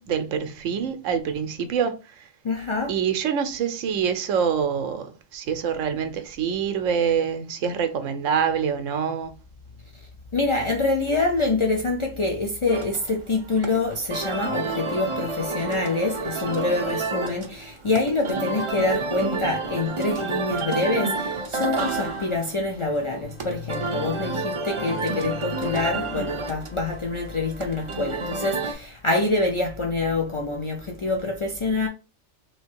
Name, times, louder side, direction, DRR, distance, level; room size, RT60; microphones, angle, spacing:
voice 1, 0.0-2.3 2.9-9.3, right 7 dB, 75° right, 1.0 m, -26 dB
voice 2, 2.4-2.9 10.3-31.9, left 3 dB, 50° left, 0.3 m, -26 dB
sound 1, 12.7-28.7, right 3 dB, 40° right, 0.4 m, -30 dB
3.1 x 2.8 x 4.5 m
omnidirectional pair, 1.4 m